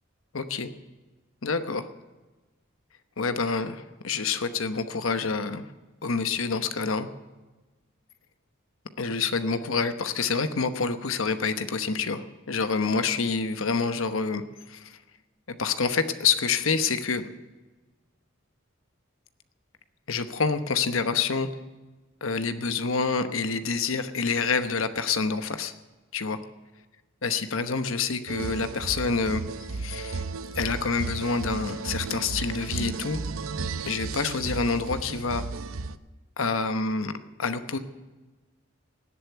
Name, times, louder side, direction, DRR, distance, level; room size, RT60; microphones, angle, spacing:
voice 1, 0.3-0.7 1.4-1.9 3.2-5.7 6.0-7.1 9.0-15.0 15.5-17.3 20.1-21.5 22.2-25.7 26.1-26.4 27.2-29.4 29.7-30.2 30.5-33.2 33.8-35.4 36.4-37.1 37.4-37.8, left 4 dB, 75° left, 9 dB, 1.0 m, -27 dB
sound 1, 28.3-36.0, right 4 dB, 80° right, 0.7 m, -34 dB
17.5 x 8.2 x 9.1 m, 1.2 s
head